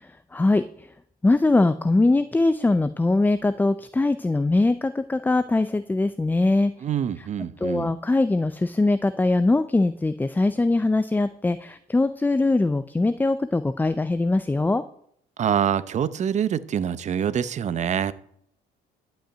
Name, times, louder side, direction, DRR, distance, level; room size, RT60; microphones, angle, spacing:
voice 1, 0.3-0.6 1.2-6.7 7.6-14.8, left 2 dB, 10° left, 12 dB, 0.5 m, -22 dB
voice 2, 6.8-7.9 15.4-18.1, right 8 dB, 45° right, 15 dB, 0.8 m, -25 dB
11.5 x 5.7 x 8.7 m, 0.67 s
cardioid pair, 110°, 17 cm